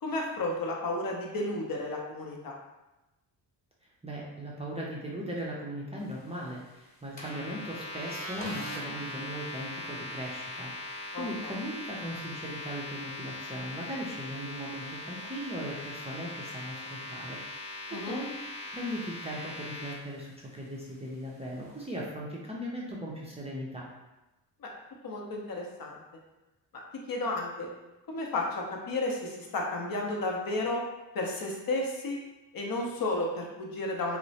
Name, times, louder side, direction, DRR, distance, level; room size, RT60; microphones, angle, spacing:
voice 1, 0.0-2.6 11.1-11.6 17.9-18.2 24.6-24.7 25.0-26.0 27.1-27.7 28.1-30.8 31.1-32.2 32.5-34.2, left 2 dB, 50° left, -1 dB, 0.6 m, -32 dB
voice 2, 4.0-23.9, equal, 15° right, -5 dB, 0.5 m, -38 dB
sound 1, 7.2-19.9, left 2 dB, 15° left, 0.9 m, -40 dB
2.9 x 2.0 x 2.7 m, 1.0 s
cardioid pair, 80°, 46 cm